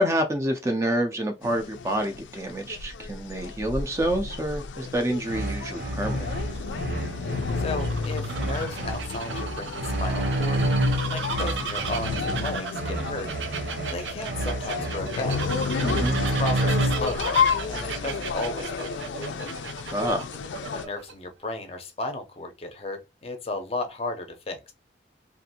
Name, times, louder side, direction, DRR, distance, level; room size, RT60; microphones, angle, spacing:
voice 1, 0.0-6.3 15.8-16.2 19.9-20.3, equal, 15° right, 0.3 m, -27 dB
sound 1, 1.4-20.9, left 5 dB, 85° left, 0.4 m, -32 dB
sound 2, 5.2-17.3, right 1 dB, 60° right, 0.8 m, -30 dB
Bird vocalization bird call bird song, 6.1-21.1, right 6 dB, 90° right, 0.5 m, -36 dB
voice 2, 7.6-10.7 11.0-13.4 13.8-15.4 16.2-19.5 20.7-24.7, left 2 dB, 35° left, 0.5 m, -34 dB
2.5 x 2.5 x 2.7 m
head